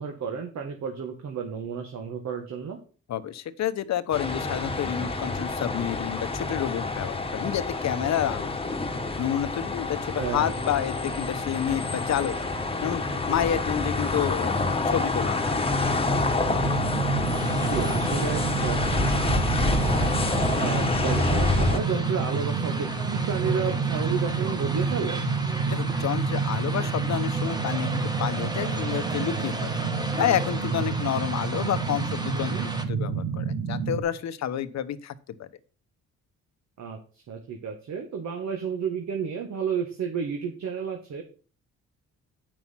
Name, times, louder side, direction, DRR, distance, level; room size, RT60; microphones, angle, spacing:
voice 1, 0.0-2.8 10.2-10.6 17.5-18.8 20.5-25.2 32.3-32.7 36.8-41.2, right 6 dB, 65° right, 3 dB, 1.7 m, -31 dB
voice 2, 3.1-8.5 9.2-12.5 12.8-13.0 13.3-14.6 14.9-15.6 25.7-29.7 30.2-35.1 35.4-35.5, left 10 dB, 60° left, 12 dB, 1.0 m, -29 dB
sound 1, 4.1-21.8, left 3 dB, 20° left, 1.3 m, -27 dB
sound 2, 16.5-34.0, right 5 dB, 85° right, 1.8 m, -29 dB
sound 3, 17.3-32.8, right 1 dB, 15° right, 1.5 m, -36 dB
8.7 x 6.2 x 5.7 m, 0.38 s
cardioid pair, 90°, 30 cm